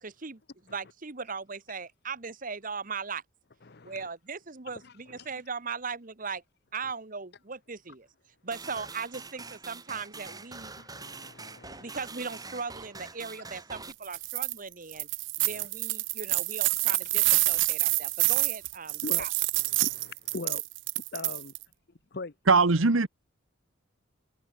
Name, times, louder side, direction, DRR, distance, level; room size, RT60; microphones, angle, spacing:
voice 1, 0.0-0.4 0.7-3.2 3.8-6.4 6.7-8.1 8.4-10.7 11.7-15.1 15.4-19.3, right 5 dB, 40° right, 1.3 m, -38 dB
voice 2, 3.6-4.1 4.8-5.3 10.8-11.9 15.5-15.7 19.0-19.3 19.5-20.6 21.1-21.5 22.1-22.3, left 3 dB, 55° left, 0.9 m, -41 dB
sound 1, 8.5-13.9, right 4 dB, 20° right, 5.6 m, -44 dB
sound 2, 14.0-14.5 14.9-21.6, right 21 dB, 65° right, 0.5 m, -27 dB
voice 3, 22.5-23.1, right 4 dB, 80° right, 1.2 m, -20 dB
head